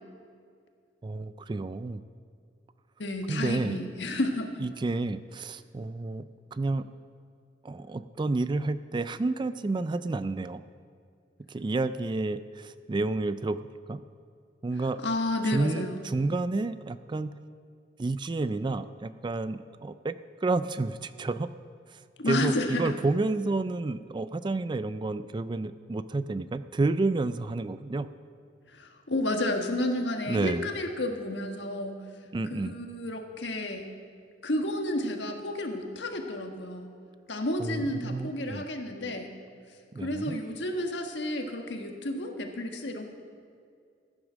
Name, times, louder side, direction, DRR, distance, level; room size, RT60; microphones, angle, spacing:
voice 1, 1.0-2.0 3.3-3.8 4.6-6.9 7.6-10.6 11.5-14.0 14.6-15.0 15.4-17.3 18.0-20.1 20.4-21.5 21.9-22.0 22.3-28.1 30.3-30.7 32.3-32.7 37.6-38.7 39.9-40.4, right 3 dB, 25° right, 13 dB, 0.3 m, -30 dB
voice 2, 3.0-4.5 15.0-16.0 22.2-22.9 28.7-32.0 32.5-33.9 34.4-36.9 37.3-39.3 40.0-43.0, left 1 dB, 75° left, 4 dB, 1.5 m, -31 dB
15.0 x 9.7 x 6.3 m, 2.2 s
head